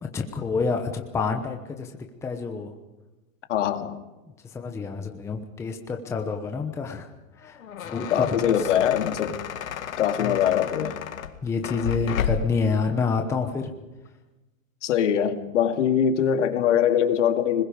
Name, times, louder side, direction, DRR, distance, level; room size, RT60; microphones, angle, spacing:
voice 1, 0.0-2.7 4.4-7.1 7.4-8.7 10.2-10.4 11.4-13.7, left 4 dB, 5° left, 4 dB, 1.0 m, -28 dB
voice 2, 3.5-3.9 8.1-9.4 10.0-11.0 14.8-17.6, left 9 dB, 60° left, 7 dB, 2.3 m, -22 dB
sound 1, 7.4-12.6, left 7 dB, 85° left, 2.2 m, -32 dB
26.5 x 20.5 x 5.2 m, 1.1 s
hypercardioid pair, 160°, 40 cm